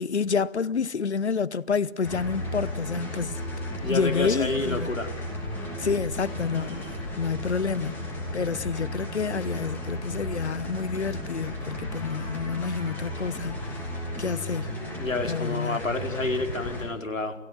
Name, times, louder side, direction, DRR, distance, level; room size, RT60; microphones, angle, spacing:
voice 1, 0.0-3.4 3.9-4.9 5.8-13.9 14.2-14.7 15.2-15.8, left 5 dB, 60° left, 1.0 m, -29 dB
sound 1, 2.0-16.8, left 1 dB, 5° left, 2.8 m, -34 dB
voice 2, 3.8-5.1 14.9-17.4, left 2 dB, 85° left, 4.7 m, -29 dB
29.5 x 17.5 x 7.9 m
figure-of-eight pair, 165°, 38 cm